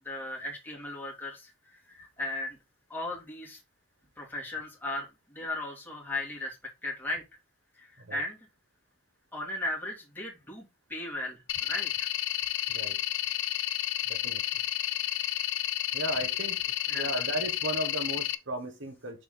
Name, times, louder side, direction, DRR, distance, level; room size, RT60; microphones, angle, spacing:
voice 1, 0.0-2.6 2.9-3.6 4.2-7.2 7.8-8.4 9.3-10.6 10.9-12.1 16.9-17.2, left 2 dB, 10° left, 2.5 m, -37 dB
sound 1, 11.5-18.4, left 13 dB, 75° left, 0.6 m, -31 dB
voice 2, 14.1-14.6 15.9-16.6 16.9-19.2, right 1 dB, 60° right, 1.4 m, -35 dB
6.4 x 4.5 x 3.9 m
head